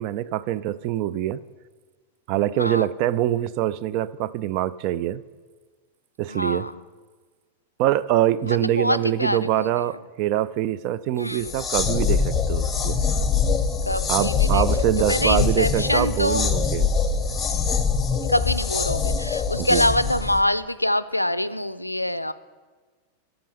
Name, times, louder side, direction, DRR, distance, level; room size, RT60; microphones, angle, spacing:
voice 1, 0.0-1.4 2.3-5.2 6.2-6.7 7.8-13.0 14.1-16.9 19.5-19.9, right 13 dB, 45° right, 16 dB, 0.3 m, -24 dB
voice 2, 2.6-2.9 6.3-6.7 8.5-9.9 11.2-11.5 13.9-14.6 15.1-16.5 18.2-22.3, left 1 dB, 85° left, 15 dB, 0.4 m, -25 dB
sound 1, 11.3-20.4, left 5 dB, 20° left, 0.8 m, -24 dB
8.6 x 7.0 x 6.6 m, 1.4 s
figure-of-eight pair, 90°, 0 cm